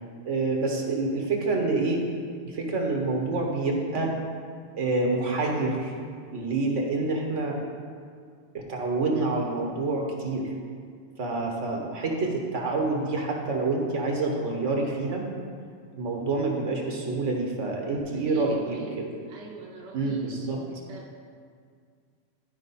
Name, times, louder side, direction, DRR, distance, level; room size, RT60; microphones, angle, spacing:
voice 1, 0.3-2.0 2.4-4.2 4.8-5.9 6.3-7.6 8.5-10.5 11.2-15.2 15.9-19.1 19.9-20.6, right 3 dB, 75° right, 0 dB, 1.5 m, -27 dB
voice 2, 18.1-21.1, right 3 dB, 60° right, -2 dB, 1.0 m, -44 dB
11.5 x 4.6 x 4.1 m, 2.1 s
omnidirectional pair, 1.3 m